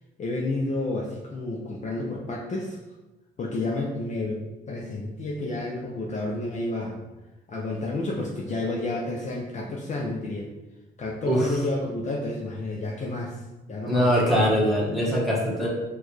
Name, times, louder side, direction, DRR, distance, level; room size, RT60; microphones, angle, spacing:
voice 1, 0.2-2.8 3.4-7.0 7.5-10.5 11.0-14.1, left 2 dB, 35° left, -2 dB, 0.5 m, -30 dB
voice 2, 13.9-15.7, equal, ahead, -6 dB, 1.2 m, -22 dB
4.4 x 2.3 x 3.1 m, 1.1 s
cardioid pair, 90°, 20 cm